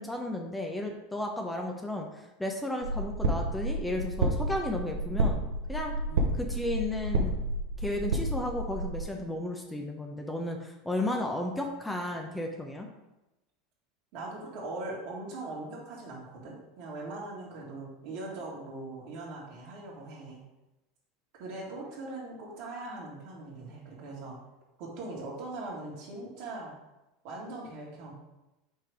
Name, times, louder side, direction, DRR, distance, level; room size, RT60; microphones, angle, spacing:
voice 1, 0.0-5.4 5.7-5.9 6.4-7.4 7.8-12.9, left 1 dB, 10° left, 2 dB, 0.8 m, -33 dB
sound 1, 2.8-9.0, right 2 dB, 75° right, 0.8 m, -30 dB
voice 2, 6.0-6.4 14.1-20.4 21.3-24.4 24.8-26.7 27.2-28.1, right 2 dB, 60° right, -3 dB, 2.2 m, -41 dB
5.5 x 3.8 x 4.9 m, 0.98 s
hypercardioid pair, 85°, 0 cm